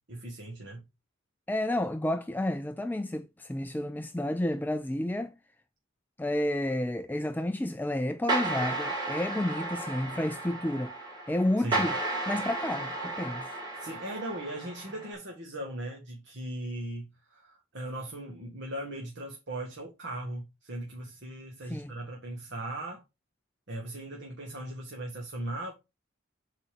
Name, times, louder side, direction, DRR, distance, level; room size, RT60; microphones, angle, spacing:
voice 1, 0.1-0.9 11.6-11.8 13.8-23.0 23.7-25.7, right 1 dB, 60° right, 1.9 m, -38 dB
voice 2, 1.5-5.3 6.2-11.0 11.3-12.0 12.3-13.5 21.7-21.9, left 1 dB, 10° left, 0.3 m, -31 dB
sound 1, 8.3-15.1, right 2 dB, 20° right, 3.3 m, -34 dB
8.3 x 4.1 x 5.1 m
head